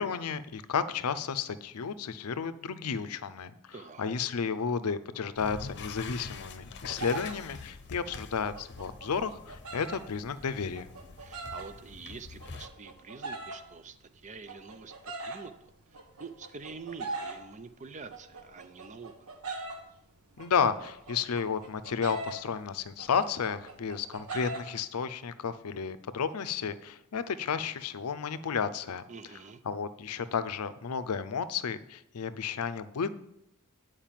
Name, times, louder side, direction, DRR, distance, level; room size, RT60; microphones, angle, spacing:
voice 1, 0.0-3.5 4.0-10.9 20.4-29.0 29.7-33.1, left 6 dB, 85° left, 13 dB, 0.5 m, -32 dB
voice 2, 3.7-4.0 11.2-19.3 29.1-29.6, right 4 dB, 35° right, 11 dB, 0.5 m, -46 dB
sound 1, 5.4-12.7, left 4 dB, 50° left, 0.7 m, -45 dB
sound 2, 6.9-19.9 20.2-24.6, right 3 dB, 85° right, 1.6 m, -42 dB
8.9 x 4.8 x 7.4 m, 0.82 s
head